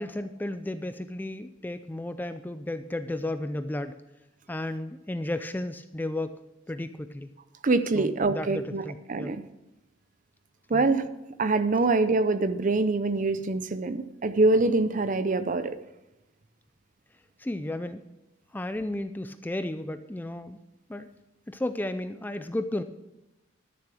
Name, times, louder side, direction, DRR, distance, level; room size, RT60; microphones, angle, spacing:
voice 1, 0.0-4.0 4.5-6.4 6.7-7.3 7.9-9.3 10.7-10.8 17.4-18.0 18.5-20.6 20.9-21.1 21.5-22.8, left 1 dB, 10° left, 10 dB, 0.3 m, -33 dB
voice 2, 7.6-8.8 9.1-9.4 10.7-11.1 11.4-15.8, right 3 dB, 40° right, 12 dB, 0.5 m, -24 dB
12.0 x 7.2 x 6.1 m, 1.0 s
head